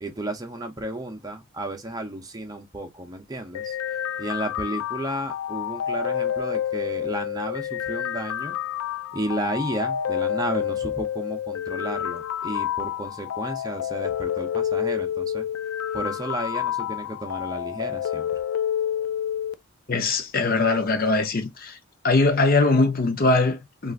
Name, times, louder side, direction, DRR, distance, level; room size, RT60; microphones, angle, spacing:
voice 1, 0.0-3.8 4.2-8.6 9.1-15.5 15.9-18.3, right 1 dB, 20° right, 0.7 m, -32 dB
sound 1, 3.5-19.5, left 9 dB, 75° left, 0.4 m, -29 dB
voice 2, 19.9-21.8 22.0-23.9, left 3 dB, 45° left, 0.7 m, -21 dB
3.4 x 2.5 x 2.4 m
head